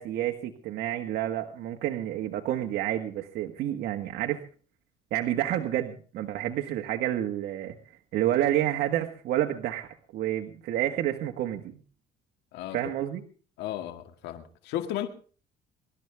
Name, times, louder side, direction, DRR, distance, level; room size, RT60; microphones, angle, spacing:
voice 1, 0.0-4.4 5.1-7.7 8.1-11.8 12.7-13.2, right 12 dB, 75° right, 1.6 m, -29 dB
voice 2, 13.6-15.1, left 12 dB, 90° left, 2.0 m, -34 dB
24.5 x 12.5 x 3.5 m
cardioid pair, 110°, 17 cm